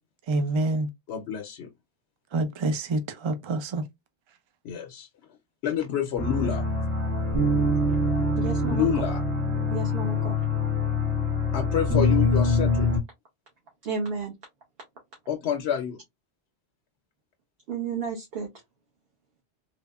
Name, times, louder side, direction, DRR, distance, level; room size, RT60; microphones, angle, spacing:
voice 1, 0.3-0.9 2.3-3.8, right 2 dB, 45° right, 0.4 m, -27 dB
voice 2, 1.1-1.7 4.6-5.1 5.6-6.7 8.6-9.2 11.5-12.9 15.3-16.0, left 9 dB, 75° left, 0.8 m, -28 dB
sound 1, 6.2-13.0, left 2 dB, 85° right, 1.6 m, -24 dB
voice 3, 8.4-8.9 9.7-10.4 13.8-14.3 17.7-18.5, right 5 dB, 65° right, 1.0 m, -32 dB
3.4 x 2.0 x 2.3 m
omnidirectional pair, 1.1 m